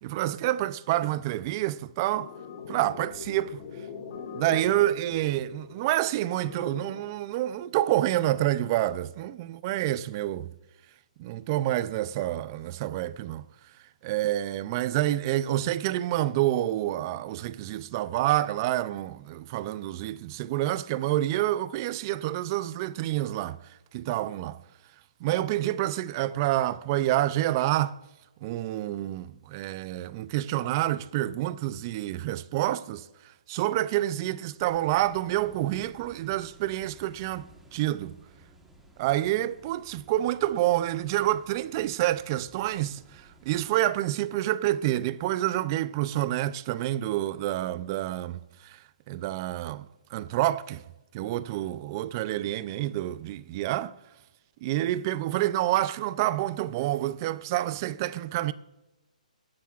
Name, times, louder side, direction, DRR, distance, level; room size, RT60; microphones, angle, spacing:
voice 1, 0.0-2.3 2.7-3.6 4.3-10.5 11.2-13.4 14.0-23.6 23.9-24.6 25.2-28.0 28.4-33.1 33.5-38.1 39.0-48.8 49.1-49.9 50.1-50.8 51.1-53.9 54.6-58.5, right 14 dB, 25° right, 0.4 m, -28 dB
sound 1, 2.1-7.1, left 6 dB, 45° left, 2.7 m, -42 dB
sound 2, 34.6-43.7, right 2 dB, 5° right, 1.2 m, -55 dB
22.0 x 10.0 x 2.4 m
hypercardioid pair, 160°, 4 cm